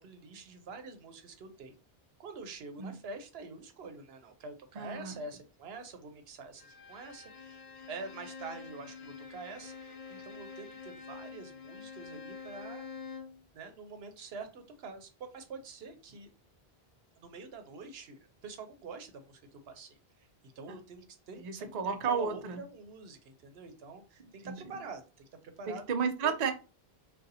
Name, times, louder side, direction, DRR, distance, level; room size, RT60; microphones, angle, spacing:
voice 1, 0.0-1.8 2.2-12.9 13.5-16.3 17.2-20.3 20.6-25.8 26.2-26.3, right 4 dB, 75° right, 0.9 m, -46 dB
voice 2, 4.8-5.2 20.7-20.8 21.4-22.6 24.4-24.5 25.7-26.5, right 6 dB, 50° right, 0.5 m, -32 dB
Bowed string instrument, 6.6-13.4, left 5 dB, 55° left, 0.6 m, -47 dB
2.6 x 2.3 x 3.9 m
omnidirectional pair, 1.0 m